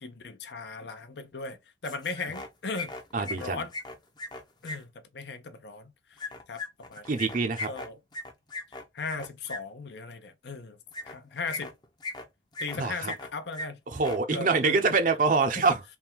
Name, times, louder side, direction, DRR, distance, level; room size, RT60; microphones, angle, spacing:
voice 1, 0.0-1.6 1.8-3.7 4.6-4.9 5.1-5.9 6.5-6.6 6.9-7.3 7.7-8.0 8.7-10.8 11.0-11.7 12.6-13.8 14.3-14.8 15.6-15.7, left 4 dB, 70° left, 0.6 m, -37 dB
sound 1, 1.8-2.5 2.7-4.8 6.2-9.6 10.9-11.1 11.5-12.2 12.5-13.3 13.5-13.7 13.9-14.2, left 2 dB, 25° left, 0.6 m, -38 dB
voice 2, 3.1-3.6 7.1-7.7 12.8-13.1 13.9-15.8, right 4 dB, 45° right, 0.6 m, -25 dB
3.5 x 2.3 x 4.4 m
head